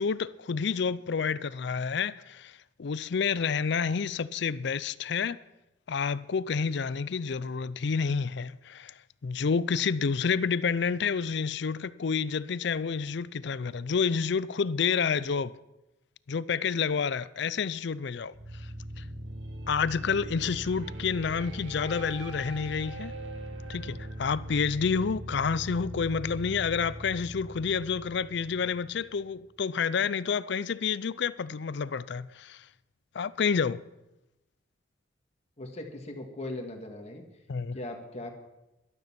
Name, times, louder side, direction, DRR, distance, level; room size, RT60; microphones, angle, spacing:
voice 1, 0.0-2.5 2.8-5.4 5.9-8.9 9.2-15.5 16.3-18.3 19.0-19.1 19.7-23.1 23.7-32.6 33.1-33.8 37.5-37.8, left 6 dB, 65° left, 0.5 m, -29 dB
sound 1, 18.3-29.2, right 1 dB, 80° right, 1.8 m, -40 dB
voice 2, 35.6-37.2 37.7-38.3, left 1 dB, 35° left, 1.9 m, -39 dB
12.0 x 12.0 x 5.9 m
head